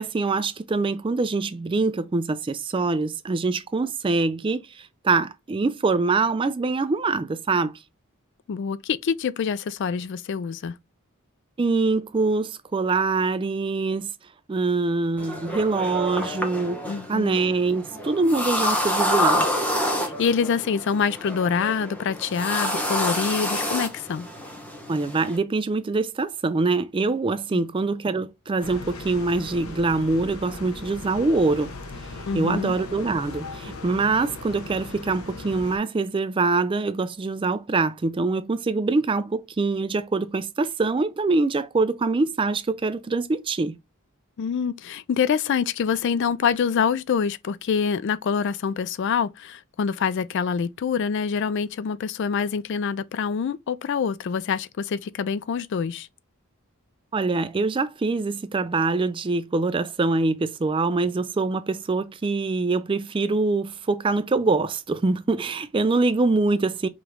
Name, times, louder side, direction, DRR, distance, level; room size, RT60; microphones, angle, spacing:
voice 1, 0.0-7.7 11.6-14.1 14.5-16.8 17.1-19.5 24.9-31.7 32.3-43.8 57.1-66.9, right 3 dB, 25° right, 0.3 m, -24 dB
voice 2, 8.5-10.8 16.9-17.4 20.0-24.3 27.5-27.6 32.3-32.8 44.4-56.1, left 6 dB, 55° left, 0.3 m, -26 dB
sound 1, 15.2-25.4, left 1 dB, 5° left, 0.9 m, -28 dB
sound 2, 28.6-35.8, left 3 dB, 80° left, 1.1 m, -38 dB
5.0 x 3.0 x 3.5 m
head